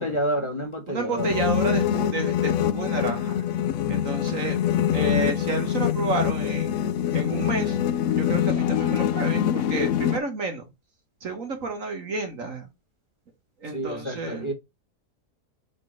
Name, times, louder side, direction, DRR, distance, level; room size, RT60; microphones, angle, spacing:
voice 1, 0.0-1.3 4.3-4.5 13.6-14.5, right 1 dB, 20° left, 1.6 m, -29 dB
voice 2, 0.9-3.4 3.9-4.6 4.9-6.7 7.1-7.8 8.2-10.6 11.2-12.7 13.6-14.5, right 3 dB, 55° right, 1.7 m, -30 dB
sound 1, 1.2-10.2, left 10 dB, 65° left, 0.8 m, -24 dB
5.1 x 3.7 x 5.8 m
omnidirectional pair, 1.7 m